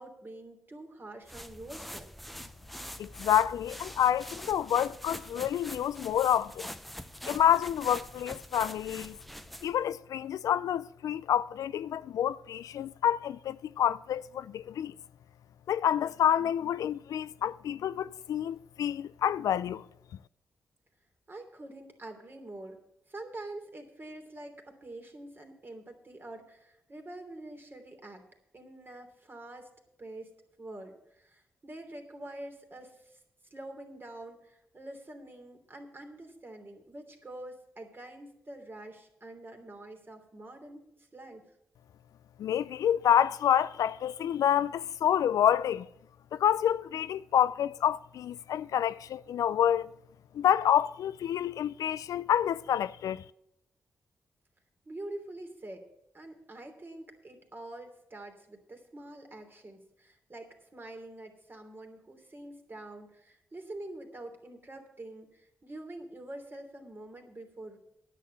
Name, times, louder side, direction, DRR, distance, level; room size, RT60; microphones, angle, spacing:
voice 1, 0.0-2.1 21.3-22.8 23.1-28.2 28.5-29.7 30.0-30.3 30.6-33.2 33.5-41.4 54.8-55.9 56.1-67.8, right 1 dB, 35° right, 3.0 m, -46 dB
sound 1, 1.3-9.8, equal, ahead, 0.7 m, -44 dB
voice 2, 3.0-6.7 7.3-9.2 9.6-14.9 15.7-19.8 42.4-45.9 46.3-49.9 50.3-53.2, left 10 dB, 75° left, 0.4 m, -28 dB
10.0 x 7.5 x 8.0 m
supercardioid pair, 45°, 6 cm